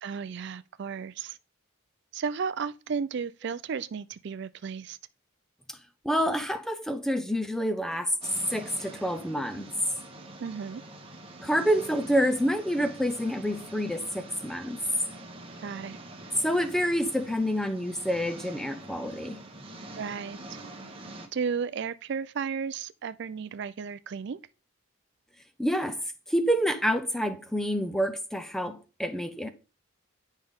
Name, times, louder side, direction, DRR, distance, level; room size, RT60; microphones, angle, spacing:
voice 1, 0.0-1.4 2.1-5.0 10.4-10.8 15.6-16.0 20.0-20.6 21.3-24.4, right 6 dB, 55° right, 0.4 m, -34 dB
voice 2, 6.0-8.1 8.5-9.7 11.4-14.8 16.4-19.4 25.6-26.0 26.3-29.5, equal, ahead, 0.6 m, -28 dB
sound 1, 8.2-21.3, right 2 dB, 25° right, 1.2 m, -45 dB
9.8 x 5.3 x 3.6 m
head